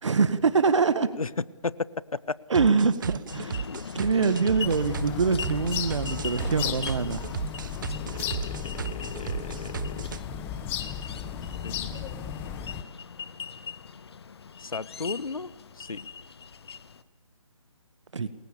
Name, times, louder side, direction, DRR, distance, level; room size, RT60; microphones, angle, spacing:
voice 1, 0.0-1.1 2.5-3.7 3.9-7.3 18.1-18.3, right 5 dB, 60° right, 13 dB, 1.9 m, -24 dB
sound 1, 2.5-10.2, right 7 dB, 35° right, 1.1 m, -35 dB
sound 2, 3.3-17.0, left 6 dB, 50° left, 1.5 m, -40 dB
sound 3, 4.6-12.8, left 9 dB, 10° left, 1.1 m, -35 dB
voice 2, 8.0-10.1 11.6-12.1 14.6-16.0, left 4 dB, 85° left, 18 dB, 1.3 m, -36 dB
29.0 x 22.0 x 7.1 m, 1.2 s
figure-of-eight pair, 160°, 18 cm